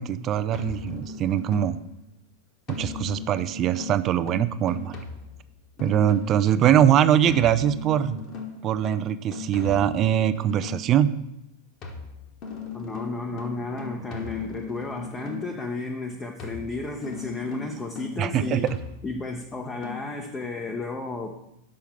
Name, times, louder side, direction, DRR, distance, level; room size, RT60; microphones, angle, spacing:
voice 1, 0.0-1.8 2.7-5.0 5.8-8.2 8.6-11.1 18.2-18.8, right 10 dB, 30° right, 13 dB, 0.4 m, -22 dB
sound 1, 0.5-1.9 2.7-6.5 7.2-10.9 11.8-15.6 16.4-19.3 19.8-20.0, left 5 dB, 35° left, 1.3 m, -38 dB
voice 2, 12.7-18.7 19.0-21.3, left 3 dB, 15° left, 2 dB, 0.7 m, -33 dB
6.3 x 5.7 x 5.8 m, 0.85 s
figure-of-eight pair, 90°, 0 cm